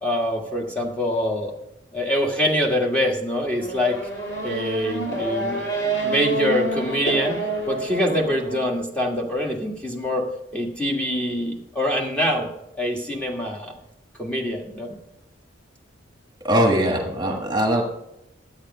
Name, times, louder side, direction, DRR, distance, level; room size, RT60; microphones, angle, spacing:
voice 1, 0.0-1.5 1.9-4.0 4.4-5.6 6.0-7.4 7.7-10.2 10.5-12.5 12.8-13.7 14.2-15.0, equal, 5° left, 0 dB, 1.5 m, -24 dB
Race car auto racing / Accelerating revving vroom, 3.6-8.7, right 2 dB, 60° left, 2.7 m, -28 dB
voice 2, 16.4-17.8, right 1 dB, 20° right, 2 dB, 1.4 m, -21 dB
11.5 x 8.8 x 5.4 m, 0.84 s
head